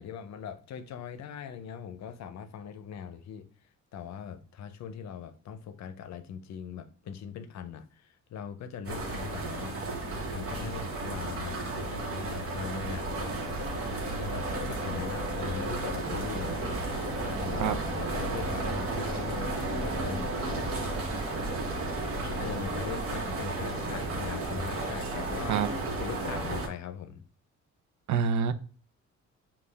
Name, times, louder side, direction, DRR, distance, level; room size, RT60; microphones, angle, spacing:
voice 1, 0.0-3.4 3.9-9.8 10.3-20.7 22.2-25.6 26.0-27.2, left 8 dB, 65° left, 0.6 m, -41 dB
sound 1, 8.8-26.7, right 2 dB, 45° right, 1.1 m, -33 dB
voice 2, 28.1-28.5, right 7 dB, 70° right, 0.5 m, -26 dB
5.3 x 2.4 x 3.3 m
cardioid pair, 90°, 30 cm